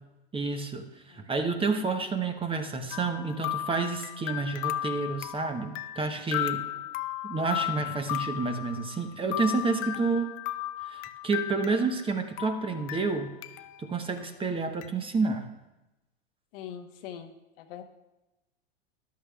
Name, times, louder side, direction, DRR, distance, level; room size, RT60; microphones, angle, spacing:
voice 1, 0.3-6.6 7.2-10.3 10.8-13.3 13.8-15.5, right 4 dB, 15° right, 6 dB, 1.0 m, -29 dB
sound 1, 2.9-12.1 12.4-13.8 14.2-14.3 14.8-14.9, left 14 dB, 40° left, 0.5 m, -35 dB
voice 2, 6.5-6.9 16.5-17.8, left 9 dB, 60° left, 6 dB, 1.1 m, -44 dB
13.5 x 11.0 x 2.4 m, 1.0 s
hypercardioid pair, 105°, 32 cm